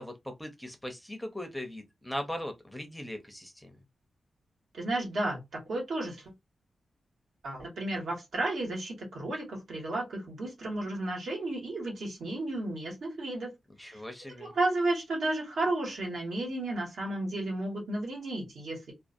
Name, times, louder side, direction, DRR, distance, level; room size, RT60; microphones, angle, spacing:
voice 1, 0.0-3.7 13.8-14.5, left 1 dB, 5° left, 0.5 m, -39 dB
voice 2, 4.7-6.2 7.4-13.5 13.9-14.0 14.3-18.9, right 2 dB, 75° right, 1.4 m, -33 dB
2.4 x 2.2 x 2.5 m
wide cardioid pair, 125°, 0 cm